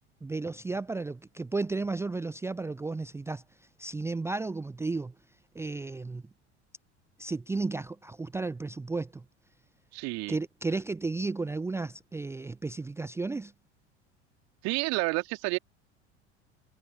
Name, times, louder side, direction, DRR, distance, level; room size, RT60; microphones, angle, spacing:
voice 1, 0.2-3.4 3.8-5.1 5.5-6.2 7.2-9.2 10.3-13.5, right 3 dB, 5° right, 0.7 m, -33 dB
voice 2, 9.9-10.4 14.6-15.6, right 25 dB, 50° right, 2.8 m, -30 dB
figure-of-eight pair, 75°, 35 cm